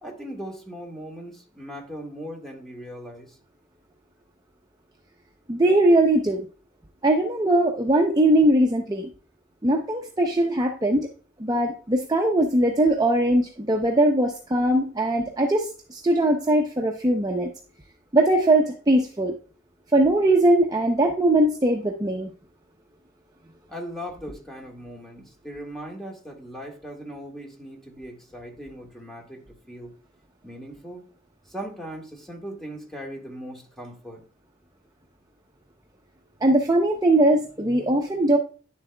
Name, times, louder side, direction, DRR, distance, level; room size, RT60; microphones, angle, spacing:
voice 1, 0.0-3.4 23.7-29.4 29.7-29.9 30.4-31.0 31.5-34.2, equal, ahead, 0 dB, 1.5 m, -39 dB
voice 2, 5.5-6.5 7.0-9.1 9.6-11.1 11.4-17.5 18.1-19.3 19.9-22.3 36.4-38.4, right 1 dB, 20° right, 2 dB, 0.6 m, -20 dB
10.0 x 7.3 x 2.2 m, 0.39 s
head